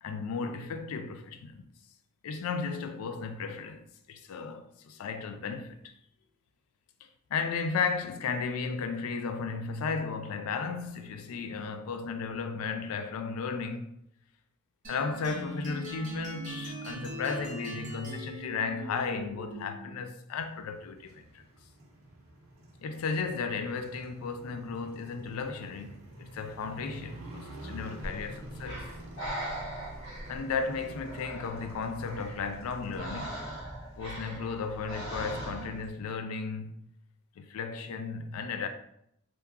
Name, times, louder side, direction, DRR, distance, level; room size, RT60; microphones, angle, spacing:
voice 1, 0.0-1.6 2.2-5.9 7.0-13.9 14.9-21.4 22.8-28.8 30.3-33.4 34.0-36.7 37.4-38.7, left 5 dB, 85° left, 0.3 m, -35 dB
sound 1, 14.8-20.0, equal, 35° right, 0.6 m, -40 dB
Motorcycle, 20.4-33.0, right 1 dB, 80° right, 0.7 m, -48 dB
Breathing, 28.0-35.9, right 1 dB, 60° left, 1.0 m, -41 dB
2.8 x 2.2 x 2.3 m
head